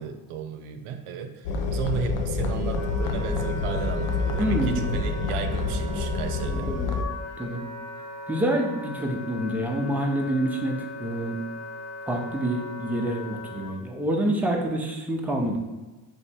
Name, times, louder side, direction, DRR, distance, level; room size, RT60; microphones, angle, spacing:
voice 1, 0.0-6.7, right 7 dB, 80° right, 7 dB, 0.6 m, -34 dB
sound 1, 1.4-7.0, left 3 dB, 75° left, 0.7 m, -27 dB
Wind instrument woodwind instrument, 2.3-13.7, left 2 dB, 30° left, 0.9 m, -39 dB
voice 2, 4.4-4.9 6.5-6.9 7.4-7.6 8.3-11.4 12.1-15.6, right 1 dB, 5° right, 0 dB, 0.6 m, -27 dB
3.4 x 3.1 x 4.3 m, 1.2 s
cardioid pair, 95°, 50 cm